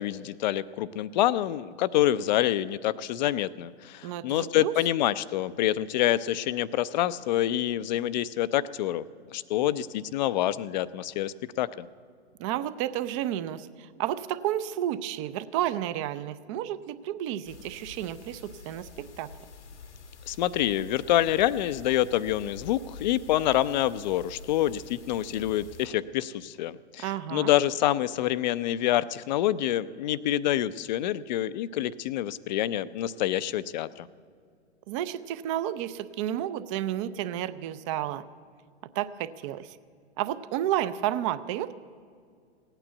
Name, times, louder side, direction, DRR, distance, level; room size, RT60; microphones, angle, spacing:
voice 1, 0.0-11.9 20.3-34.1, left 13 dB, 40° left, 17 dB, 0.5 m, -27 dB
voice 2, 4.0-4.7 12.4-19.3 27.0-27.5 34.9-38.2 38.9-39.8 40.2-41.8, right 12 dB, 30° right, 14 dB, 0.5 m, -31 dB
sound 1, 17.4-25.9, left 4 dB, 85° left, 1.3 m, -47 dB
16.5 x 9.1 x 8.1 m, 2.1 s
hypercardioid pair, 120°, 34 cm